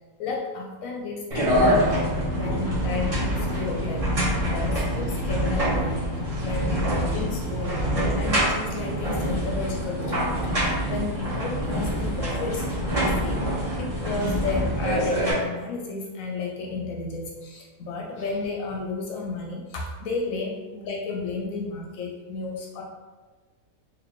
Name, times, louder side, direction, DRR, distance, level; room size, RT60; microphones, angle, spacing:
voice 1, 0.2-1.9 2.3-4.1 4.5-6.0 6.4-6.8 7.1-22.8, left 4 dB, 70° left, 0 dB, 0.9 m, -33 dB
sound 1, 1.3-15.3, equal, 25° right, 0.9 m, -25 dB
4.2 x 2.6 x 3.1 m, 1.3 s
omnidirectional pair, 1.6 m